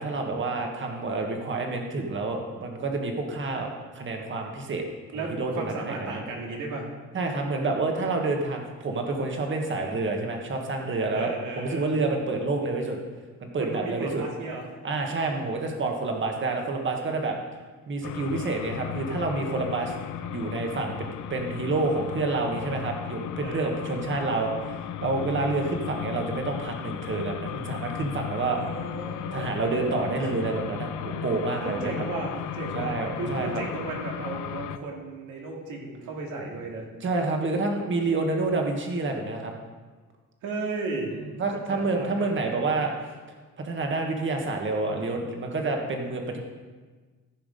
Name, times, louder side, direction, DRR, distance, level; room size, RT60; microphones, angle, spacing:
voice 1, 0.0-4.9 5.1-6.2 7.1-11.3 11.6-13.0 13.4-14.2 14.8-17.4 17.9-19.9 20.3-28.6 29.3-32.0 32.7-33.6 37.0-39.6 41.4-42.9 43.6-46.4, right 3 dB, 40° right, 2 dB, 1.6 m, -28 dB
voice 2, 5.1-6.9 11.1-12.0 13.6-14.6 23.4-23.9 28.6-29.6 31.6-36.9 40.4-41.2 41.7-42.3, right 3 dB, 85° right, -1 dB, 2.4 m, -34 dB
sound 1, 18.0-34.8, left 9 dB, 85° left, 0.7 m, -35 dB
15.0 x 5.9 x 5.3 m, 1.4 s
cardioid pair, 120°, 30 cm